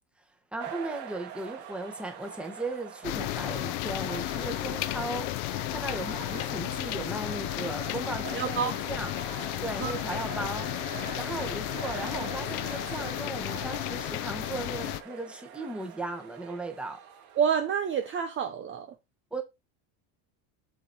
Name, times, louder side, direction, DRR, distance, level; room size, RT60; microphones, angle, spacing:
voice 1, 0.5-5.3 5.7-9.1 9.6-10.7 11.2-17.0 19.3-19.4, right 2 dB, ahead, 1.4 m, -37 dB
sound 1, 0.6-18.2, right 9 dB, 75° right, 2.0 m, -43 dB
sound 2, 3.0-15.0, left 18 dB, 80° left, 0.8 m, -33 dB
voice 2, 8.3-8.8 9.8-9.9 17.4-18.9, right 7 dB, 30° right, 0.7 m, -28 dB
7.7 x 5.2 x 4.2 m
cardioid pair, 135°, 43 cm